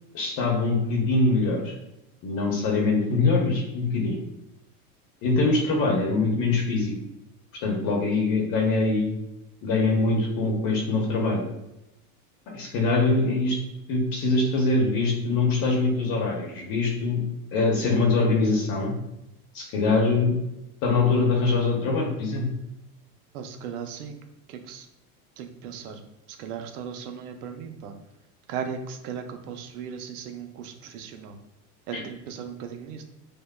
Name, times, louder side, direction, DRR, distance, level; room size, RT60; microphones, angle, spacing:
voice 1, 0.1-1.7 2.2-4.2 5.2-6.9 7.6-9.2 9.6-11.4 12.5-13.6 13.9-17.2 17.5-18.9 19.5-20.4 20.8-22.5 31.9-32.0, left 3 dB, 50° left, 0 dB, 0.8 m, -23 dB
voice 2, 23.3-24.2 24.5-24.9 25.4-26.0 26.3-27.9 28.5-31.4 31.9-33.0, right 7 dB, 90° right, 7 dB, 0.6 m, -37 dB
4.9 x 2.2 x 2.2 m, 0.88 s
supercardioid pair, 105°, 43 cm